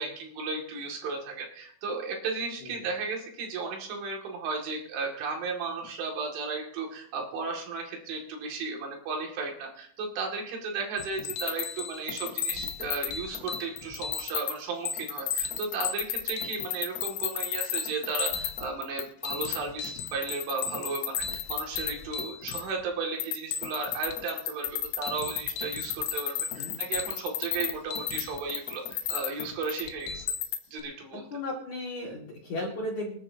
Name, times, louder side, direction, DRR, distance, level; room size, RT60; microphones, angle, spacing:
voice 1, 0.0-30.3 30.7-31.3, right 4 dB, 75° right, 1 dB, 4.6 m, -34 dB
sound 1, 11.0-14.5 14.9-22.8 23.2-30.8, left 9 dB, 85° left, 3.7 m, -33 dB
voice 2, 31.3-33.2, left 1 dB, 50° left, -2 dB, 2.7 m, -34 dB
26.0 x 10.0 x 2.8 m, 0.63 s
omnidirectional pair, 5.6 m